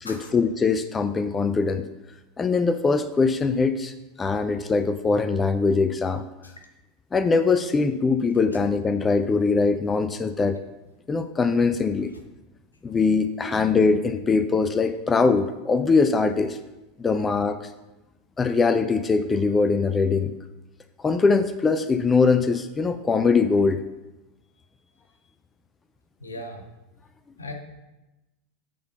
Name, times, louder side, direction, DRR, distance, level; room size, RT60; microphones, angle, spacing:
voice 1, 0.0-1.9 2.4-3.9 4.2-6.2 7.1-10.6 11.1-12.1 12.8-16.6 17.0-17.6 18.4-20.3 21.0-23.8, left 4 dB, 20° left, 10 dB, 0.4 m, -22 dB
voice 2, 26.2-26.6 27.4-27.5, left 2 dB, 80° left, 4 dB, 1.0 m, -37 dB
8.6 x 4.0 x 5.4 m, 1.0 s
figure-of-eight pair, 80°, 0 cm